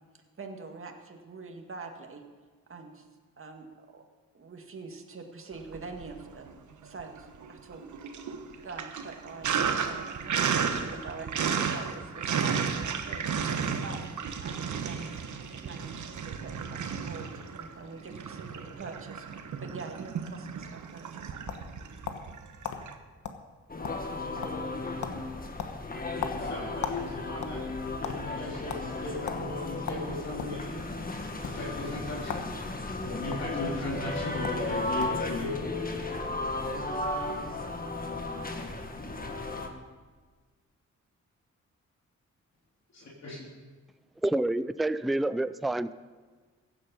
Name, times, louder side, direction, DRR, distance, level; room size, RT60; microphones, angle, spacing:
voice 1, 0.4-2.2 2.7-3.1 3.4-4.0 4.3-6.5 6.8-7.8 8.6-9.5 9.8-15.1 15.6-21.3, right 4 dB, 45° right, 3 dB, 2.0 m, -44 dB
Sink (filling or washing), 5.6-6.5 6.8-22.9, right 6 dB, 75° right, 1.2 m, -33 dB
sound 1, 20.9-22.3 22.6-22.8 23.2-23.4 23.7-24.2 24.4-24.7 25.0-25.2 25.6-27.0 27.3-28.2 28.7-28.8 29.3-29.4 29.9-30.6 31.3-31.5 32.2-32.5 32.8-33.4 34.1-34.2 34.4-34.6 35.0-35.3, left 7 dB, 80° left, 1.2 m, -36 dB
sound 2, 23.7-39.7, left 2 dB, 30° left, 1.7 m, -35 dB
voice 2, 26.3-27.6 28.0-30.9 31.4-32.5 33.0-35.7 42.9-43.4, left 2 dB, 60° left, -4 dB, 3.4 m, -37 dB
voice 3, 44.2-45.9, right 1 dB, ahead, 14 dB, 0.4 m, -28 dB
15.5 x 10.0 x 5.5 m, 1.4 s
cardioid pair, 80°, 30 cm